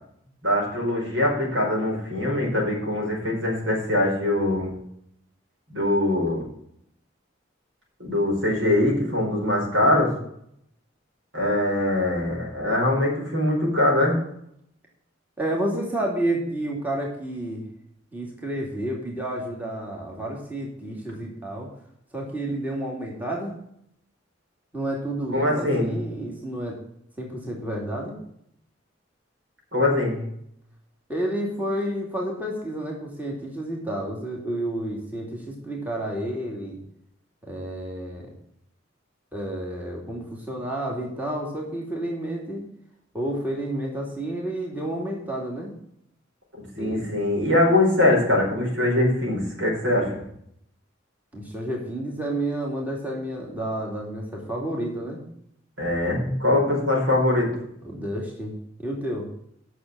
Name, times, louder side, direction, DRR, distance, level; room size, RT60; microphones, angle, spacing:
voice 1, 0.4-4.7 5.7-6.4 8.0-10.1 11.3-14.2 25.3-25.9 29.7-30.2 46.7-50.2 55.8-57.5, left 1 dB, 75° right, -1 dB, 4.8 m, -22 dB
voice 2, 15.4-17.7 18.1-21.7 22.1-23.5 24.7-26.8 27.2-28.2 31.1-36.8 37.4-38.3 39.3-42.6 43.1-45.7 46.8-47.1 51.3-55.2 57.8-58.5 58.8-59.3, right 1 dB, 10° right, -2 dB, 2.5 m, -30 dB
10.0 x 6.6 x 7.6 m, 0.72 s
head